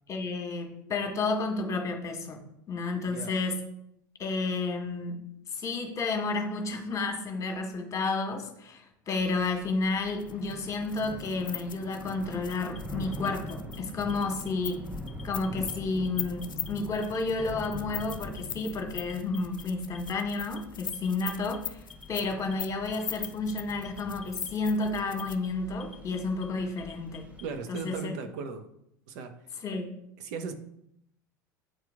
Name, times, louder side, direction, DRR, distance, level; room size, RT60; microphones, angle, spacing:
voice 1, 0.1-2.4 2.7-3.6 4.2-5.2 5.5-14.8 15.2-27.3 27.7-28.1 29.6-29.9, left 3 dB, 30° left, 3 dB, 1.6 m, -31 dB
voice 2, 3.0-3.3 27.4-28.7 29.1-29.5 30.2-30.5, right 5 dB, 60° right, 7 dB, 0.9 m, -37 dB
Thunder / Rain, 9.2-27.6, left 1 dB, 15° right, 1.1 m, -44 dB
sound 1, 10.1-25.5, left 8 dB, 80° left, 0.5 m, -40 dB
Alarm, 12.5-13.8 14.1-14.7 15.1-15.7 16.0-16.7 17.0-17.7 18.0-18.6 19.0-19.6 19.9-20.6 20.9-21.6 21.9-22.5 22.9-23.5 23.8-24.5 24.8-25.5 25.8-26.4 26.8-28.0, left 6 dB, 5° left, 1.1 m, -50 dB
8.8 x 4.5 x 3.6 m, 0.76 s
figure-of-eight pair, 75°, 11 cm